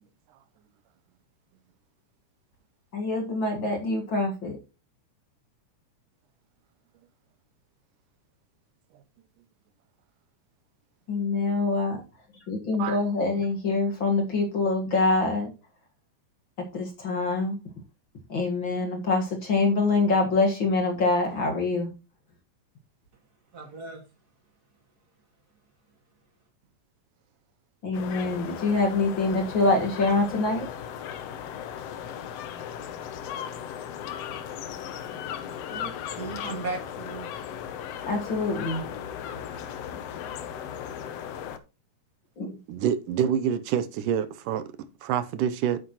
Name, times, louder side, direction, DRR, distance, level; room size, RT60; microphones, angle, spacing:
voice 1, 2.9-4.6 11.1-12.0 12.5-15.5 16.7-17.6 18.3-21.9 27.8-30.7 38.1-38.8 42.4-42.5, left 3 dB, 45° left, 2.0 m, -25 dB
voice 2, 23.5-24.0 35.7-37.3 39.5-39.8, right 3 dB, 35° right, 2.1 m, -37 dB
sound 1, 27.9-41.6, left 9 dB, 70° left, 1.6 m, -37 dB
voice 3, 42.7-45.8, right 9 dB, 90° right, 2.4 m, -27 dB
9.2 x 9.1 x 3.0 m
omnidirectional pair, 3.7 m